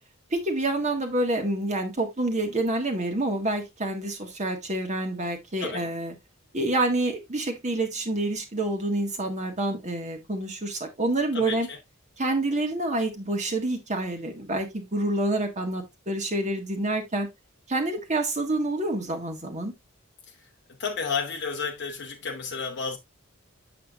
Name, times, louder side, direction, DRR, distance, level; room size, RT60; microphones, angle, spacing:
voice 1, 0.3-6.1 6.5-11.7 12.2-17.3 17.7-19.7, right 2 dB, 35° right, 1.6 m, -27 dB
voice 2, 11.3-11.8 20.3-20.5 20.8-23.0, left 5 dB, 55° left, 0.9 m, -32 dB
7.6 x 7.3 x 2.4 m
head